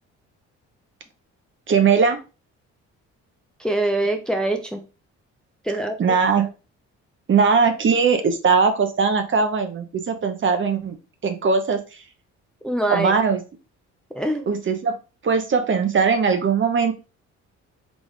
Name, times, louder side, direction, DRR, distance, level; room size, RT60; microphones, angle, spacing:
voice 1, 1.7-2.2 6.0-6.5 7.3-11.0 11.2-12.0 12.9-13.4 14.5-15.0 15.2-16.9, right 5 dB, 40° right, 7 dB, 0.7 m, -20 dB
voice 2, 3.6-4.8 5.7-6.2 12.6-13.1 14.1-14.5, right 1 dB, ahead, 5 dB, 0.5 m, -24 dB
4.0 x 2.3 x 3.5 m, 0.31 s
cardioid pair, 90°, 30 cm